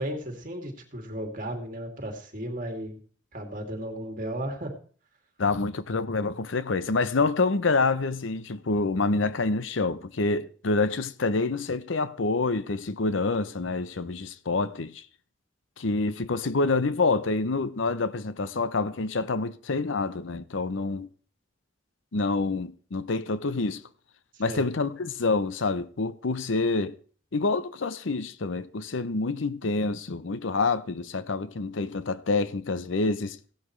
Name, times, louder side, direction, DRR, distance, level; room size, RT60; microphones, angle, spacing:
voice 1, 0.0-3.0 3.3-4.7 24.3-24.6, right 1 dB, 45° right, 2.6 m, -35 dB
voice 2, 5.4-15.0 15.8-21.1 22.1-23.8 24.4-27.0 27.3-33.4, left 3 dB, 80° left, 0.7 m, -27 dB
16.0 x 11.0 x 3.2 m
head